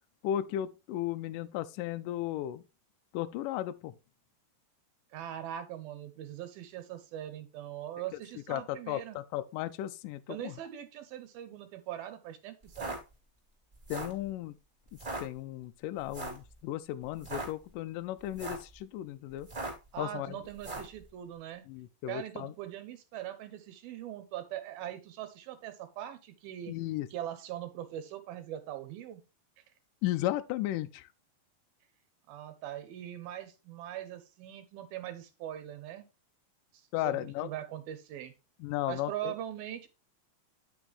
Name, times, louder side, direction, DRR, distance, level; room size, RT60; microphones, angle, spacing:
voice 1, 0.2-2.6 3.1-3.9 8.5-10.5 13.9-14.5 15.2-19.5 20.0-20.4 21.7-22.5 26.7-27.1 30.0-31.1 36.9-37.5 38.6-39.3, left 13 dB, 85° left, 1.9 m, -35 dB
voice 2, 5.1-9.2 10.3-13.0 19.9-21.7 22.1-26.7 27.1-29.2 32.3-36.1 37.0-38.3 38.9-39.9, right 11 dB, 80° right, 2.8 m, -41 dB
sound 1, 12.6-13.0 13.7-14.2 14.9-15.2 16.1-16.4 17.1-17.5 18.2-18.7 19.4-19.9 20.6-20.9, right 2 dB, 20° right, 1.7 m, -38 dB
9.0 x 5.9 x 3.2 m
omnidirectional pair, 4.3 m